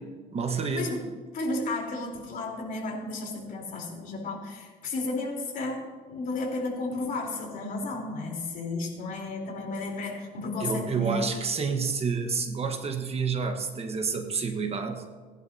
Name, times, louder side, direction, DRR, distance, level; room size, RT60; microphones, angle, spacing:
voice 1, 0.3-0.8 10.6-15.0, right 5 dB, 35° right, 5 dB, 1.3 m, -29 dB
voice 2, 1.3-11.3, left 2 dB, 55° left, 0 dB, 3.7 m, -33 dB
19.5 x 10.5 x 2.8 m, 1.4 s
cardioid pair, 110°, 17 cm